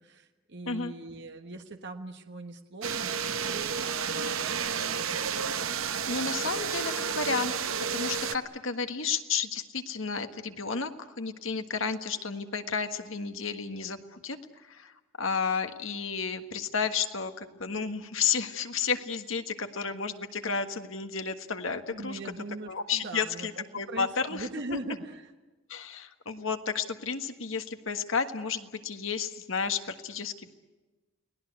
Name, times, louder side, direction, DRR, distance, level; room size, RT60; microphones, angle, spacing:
voice 1, 0.0-5.3 21.9-25.3, right 2 dB, 55° right, 5 dB, 1.4 m, -41 dB
sound 1, 2.8-8.4, right 6 dB, 80° right, 1.1 m, -31 dB
voice 2, 6.1-7.5 7.9-22.2 22.7-24.5 25.7-30.5, left 5 dB, 70° left, 7 dB, 1.6 m, -32 dB
30.0 x 19.0 x 8.1 m, 1.2 s
head